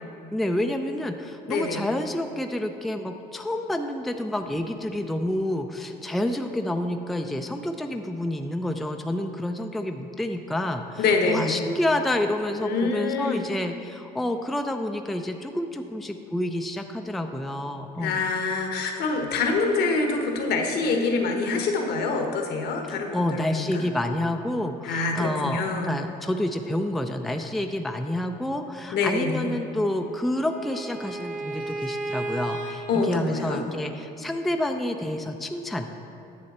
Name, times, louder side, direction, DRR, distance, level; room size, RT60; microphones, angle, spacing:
voice 1, 0.3-18.2 22.9-35.9, left 1 dB, ahead, 5 dB, 0.4 m, -29 dB
voice 2, 1.5-1.8 11.0-11.6 12.6-13.4 18.0-23.8 24.8-25.9 28.9-29.5 32.9-33.6, left 4 dB, 70° left, 3 dB, 1.1 m, -25 dB
Bowed string instrument, 29.6-32.8, right 2 dB, 50° right, 1.3 m, -34 dB
9.8 x 6.7 x 4.2 m, 2.6 s
cardioid pair, 110°, 17 cm